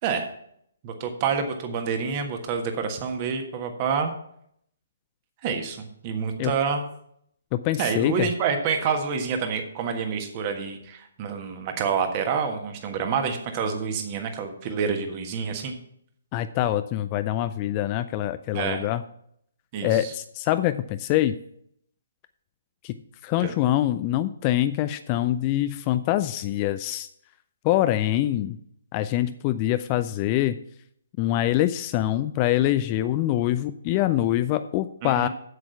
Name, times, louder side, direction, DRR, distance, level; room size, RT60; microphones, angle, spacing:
voice 1, 0.8-4.1 5.4-6.9 7.8-15.7 18.5-18.8 19.7-20.1 23.4-23.5 35.0-35.3, right 6 dB, 30° right, 5 dB, 1.4 m, -28 dB
voice 2, 7.5-8.3 16.3-19.0 19.8-21.4 22.8-22.9 23.2-27.1 27.6-28.6 28.9-30.5 31.2-35.3, left 13 dB, 30° left, 12 dB, 0.4 m, -24 dB
8.1 x 7.8 x 5.8 m, 0.70 s
figure-of-eight pair, 130°, 0 cm